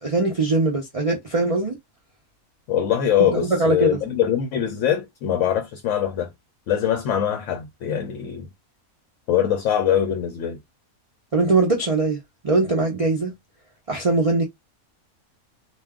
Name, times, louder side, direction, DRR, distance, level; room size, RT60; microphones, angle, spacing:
voice 1, 0.0-1.8 3.6-4.0 11.3-13.3 13.9-14.4, right 3 dB, 40° right, 0.5 m, -21 dB
voice 2, 2.7-6.3 6.7-8.5 9.3-10.6, left 10 dB, 70° left, 0.8 m, -23 dB
2.5 x 2.3 x 3.5 m
omnidirectional pair, 1.5 m